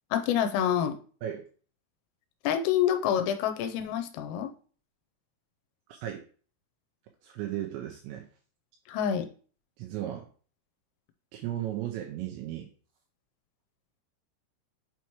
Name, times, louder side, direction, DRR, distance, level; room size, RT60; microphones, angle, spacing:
voice 1, 0.1-1.0 2.4-4.5 8.9-9.3, left 9 dB, 85° left, 7 dB, 3.3 m, -27 dB
voice 2, 5.9-6.2 7.2-8.3 9.8-10.3 11.3-12.7, right 12 dB, 90° right, 2 dB, 2.6 m, -35 dB
7.5 x 4.6 x 3.0 m, 0.41 s
omnidirectional pair, 5.9 m